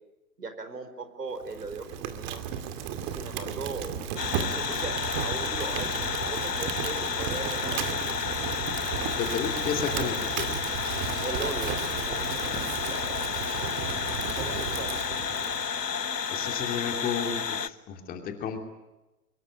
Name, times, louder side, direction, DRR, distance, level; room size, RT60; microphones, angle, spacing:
voice 1, 0.4-2.4 3.1-3.9 4.5-5.9 6.3-8.2 11.2-12.6 12.9-13.7 14.4-15.2, right 4 dB, 75° right, 9 dB, 4.9 m, -39 dB
Fire, 1.4-15.8, right 8 dB, 30° right, 2.4 m, -34 dB
sound 1, 4.2-17.7, left 6 dB, 80° left, 1.2 m, -31 dB
voice 2, 9.2-10.5 16.3-18.7, left 7 dB, 20° left, 5 dB, 2.7 m, -32 dB
24.0 x 22.0 x 9.9 m, 1.0 s
figure-of-eight pair, 125°, 48 cm